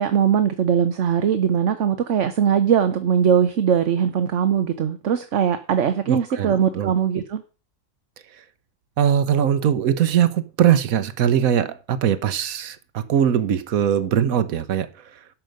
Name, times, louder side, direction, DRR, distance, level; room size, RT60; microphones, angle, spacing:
voice 1, 0.0-7.4, right 8 dB, 60° right, 1.2 m, -20 dB
voice 2, 6.1-6.9 9.0-15.2, right 9 dB, 85° right, 1.3 m, -21 dB
12.0 x 5.2 x 7.8 m
omnidirectional pair, 1.4 m